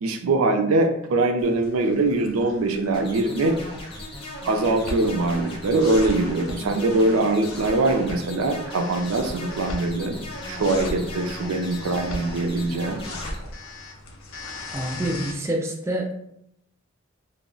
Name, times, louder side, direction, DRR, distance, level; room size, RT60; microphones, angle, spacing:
voice 1, 0.0-3.6 4.4-10.2 10.5-13.1, right 2 dB, 85° right, 5 dB, 0.4 m, -22 dB
sound 1, 1.4-15.3, left 2 dB, 75° left, 0.5 m, -38 dB
sound 2, 2.9-13.3, left 1 dB, 25° left, 0.7 m, -38 dB
voice 2, 14.7-16.1, right 1 dB, 15° right, 0 dB, 0.3 m, -27 dB
2.3 x 2.0 x 3.7 m, 0.74 s
head